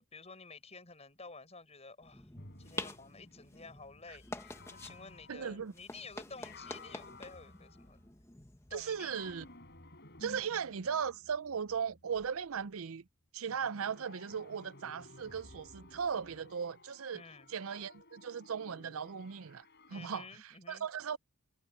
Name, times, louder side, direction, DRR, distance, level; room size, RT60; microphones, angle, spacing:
voice 1, 0.0-2.3 2.6-8.2 8.7-9.2 17.1-17.5 19.9-20.9, left 4 dB, 30° left, 7.2 m, -52 dB
sound 1, 2.0-9.6, left 2 dB, 10° left, 1.2 m, -48 dB
sound 2, 2.3-8.3 8.8-12.7 13.5-20.0, left 2 dB, 50° left, 6.7 m, -56 dB
voice 2, 5.3-5.7 8.7-9.4 10.2-13.0 13.3-17.2 17.5-21.2, right 7 dB, 70° right, 0.5 m, -38 dB
head